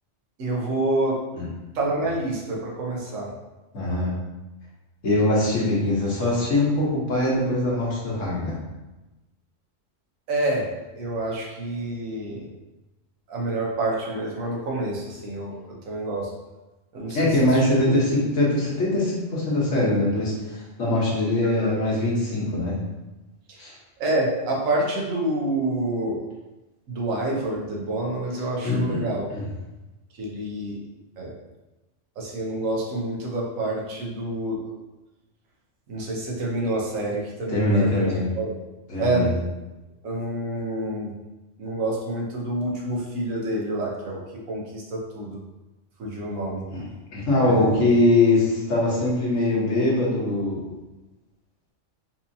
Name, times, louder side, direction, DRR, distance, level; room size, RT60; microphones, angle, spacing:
voice 1, 0.4-1.2 1.7-3.3 10.3-10.7 10.9-12.5 13.3-16.3 16.9-17.9 21.6-21.7 24.0-26.2 26.9-29.3 30.2-30.8 31.2-31.3 32.2-34.8 35.9-38.5 39.0-39.4 40.0-41.1 41.6-44.2 44.5-45.4 46.0-46.6 47.3-47.8, right 2 dB, 90° right, -3 dB, 1.2 m, -28 dB
voice 2, 3.7-4.1 5.0-8.5 17.1-22.8 23.6-23.7 28.6-29.0 29.3-29.5 37.5-38.2 38.9-39.3 46.7-46.8 47.1-50.6, left 2 dB, 70° left, -5 dB, 1.4 m, -22 dB
4.3 x 2.7 x 2.6 m, 1.1 s
omnidirectional pair, 1.3 m